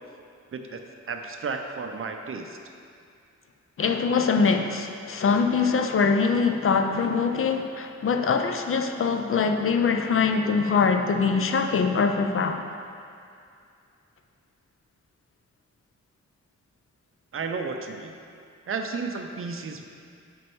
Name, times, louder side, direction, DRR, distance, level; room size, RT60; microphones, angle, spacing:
voice 1, 1.1-2.6 17.3-18.1 18.7-19.8, right 4 dB, 50° right, 4 dB, 0.5 m, -32 dB
voice 2, 3.8-12.6, left 5 dB, 50° left, 5 dB, 0.4 m, -23 dB
6.3 x 5.3 x 4.5 m, 2.4 s
wide cardioid pair, 165°, 29 cm